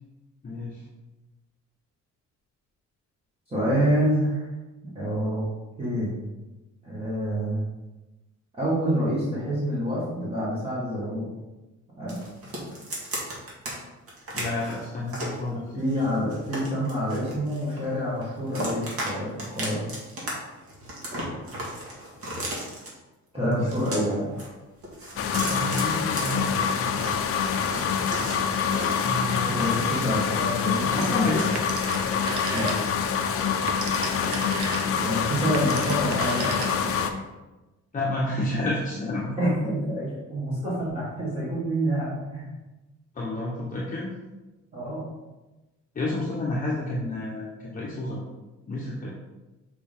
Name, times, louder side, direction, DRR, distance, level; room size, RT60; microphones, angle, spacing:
voice 1, 0.4-0.8 14.3-15.6 23.4-23.5 25.5-27.1 29.0-29.8 30.9-31.5 37.9-39.3 43.1-44.1 45.9-48.2 48.7-49.1, left 1 dB, 25° left, -5 dB, 1.0 m, -30 dB
voice 2, 3.5-4.5 5.0-5.4 5.8-6.2 6.8-7.6 8.6-11.3 12.0-12.2 15.8-19.9 23.3-24.3 29.5-31.4 32.5-32.7 34.8-36.7 39.4-42.5 44.7-45.1, equal, 20° right, -9 dB, 1.8 m, -27 dB
sound 1, 12.1-13.7 14.1-15.4 15.9-17.9 18.2-19.1 19.4-20.3 20.6-22.9 23.5-24.5 24.8-27.1 27.5-30.3 30.6-31.4, right 1 dB, 50° right, 2.1 m, -35 dB
sound 2, 25.2-37.1, left 7 dB, 50° left, 0.6 m, -26 dB
Telephone, 31.6-33.1 33.5-37.0, right 4 dB, 80° right, 1.1 m, -34 dB
6.7 x 5.0 x 3.7 m, 1.1 s
cardioid pair, 160°, 30 cm